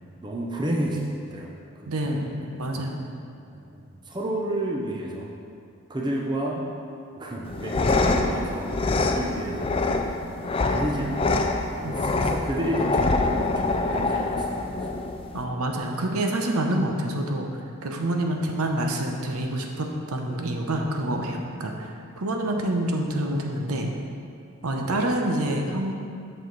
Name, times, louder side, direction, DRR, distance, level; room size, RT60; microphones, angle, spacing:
voice 1, 0.2-2.9 3.5-5.3 5.9-6.6 7.2-8.7 9.2-10.1 10.6-14.9 24.8-24.9, right 1 dB, 20° right, -1 dB, 0.6 m, -31 dB
voice 2, 1.9-3.1 11.8-12.2 15.3-23.9 24.6-25.9, right 1 dB, 85° right, 2 dB, 0.8 m, -27 dB
sound 1, 7.5-15.4, left 3 dB, 25° left, 0.3 m, -25 dB
7.6 x 6.5 x 4.0 m, 2.4 s
head